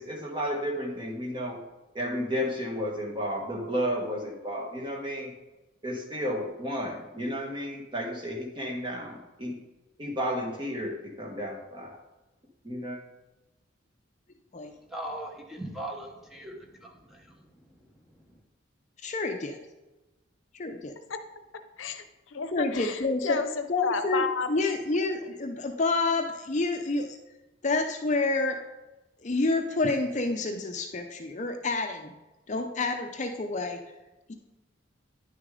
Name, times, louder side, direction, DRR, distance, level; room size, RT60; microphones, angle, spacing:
voice 1, 0.0-1.6 1.9-5.3 5.8-9.5 10.0-11.9 12.6-13.0, equal, 25° right, 0 dB, 1.4 m, -32 dB
voice 2, 14.9-17.5 17.9-18.0 18.3-18.4, right 1 dB, ahead, 0 dB, 1.0 m, -40 dB
voice 3, 19.0-19.6 20.5-20.9 22.5-23.4 23.7-27.2 27.6-28.6 29.2-32.1 32.5-33.8 34.3-34.4, left 3 dB, 40° left, 5 dB, 0.6 m, -28 dB
voice 4, 21.8-24.7 25.0-25.1, left 5 dB, 85° left, 10 dB, 0.7 m, -32 dB
9.9 x 6.5 x 3.7 m, 1.1 s
head